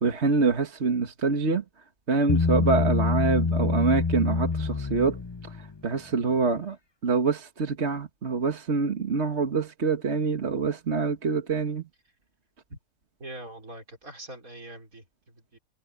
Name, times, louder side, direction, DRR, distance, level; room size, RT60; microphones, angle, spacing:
voice 1, 0.0-1.6 2.1-5.2 5.8-6.8 7.0-11.8, right 4 dB, 50° right, 1.9 m, -25 dB
Bass guitar, 2.3-5.7, left 4 dB, 25° left, 0.7 m, -26 dB
voice 2, 13.2-15.6, right 1 dB, 75° right, 5.6 m, -43 dB
omnidirectional pair, 1.5 m